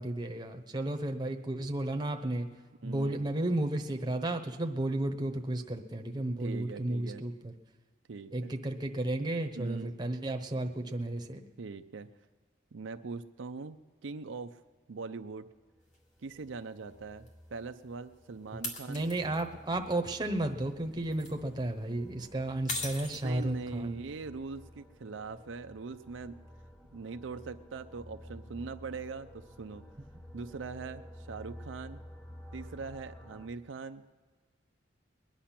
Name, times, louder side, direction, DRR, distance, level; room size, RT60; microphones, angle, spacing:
voice 1, 0.0-2.5 2.8-7.5 8.3-11.5 18.5-24.0, right 1 dB, 20° right, 5 dB, 0.9 m, -33 dB
voice 2, 2.8-3.2 6.4-7.3 8.1-8.5 9.5-9.9 11.6-12.1 12.7-14.6 14.9-15.5 16.2-19.1 23.2-26.4 26.9-29.8 30.3-32.0 32.5-34.2, right 4 dB, 75° right, 9 dB, 0.5 m, -42 dB
sound 1, 15.8-33.5, equal, 10° left, 0.7 m, -52 dB
sound 2, 15.9-16.0 17.3-17.4 18.6-19.4 20.9-21.3 22.7-23.6, left 2 dB, 40° left, 2.3 m, -39 dB
21.5 x 10.0 x 5.9 m, 1.4 s
head